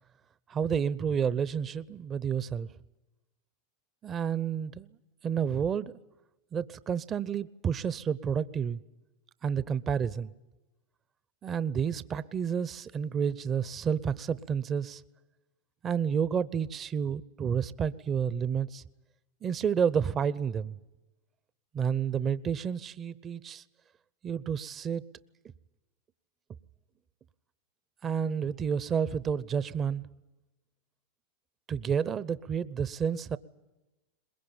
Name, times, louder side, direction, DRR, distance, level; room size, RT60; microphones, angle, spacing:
voice 1, 0.5-2.7 4.0-4.9 5.2-5.9 6.5-8.8 9.4-10.3 11.4-15.0 15.8-18.8 19.4-20.8 21.7-23.6 24.2-25.1 28.0-30.0 31.7-33.4, right 7 dB, 30° right, 0.7 m, -30 dB
22.5 x 21.0 x 8.9 m
hypercardioid pair, 95°, 0 cm